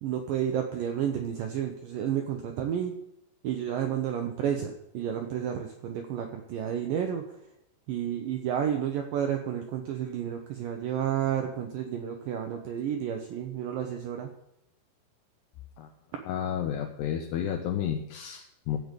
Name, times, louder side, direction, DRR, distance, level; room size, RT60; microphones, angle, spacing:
voice 1, 0.0-2.9 3.4-7.4 7.9-14.3, right 9 dB, 85° right, 4 dB, 1.9 m, -31 dB
voice 2, 16.3-18.8, left 9 dB, 75° left, 3 dB, 2.7 m, -31 dB
14.5 x 5.1 x 8.2 m, 0.82 s
omnidirectional pair, 5.1 m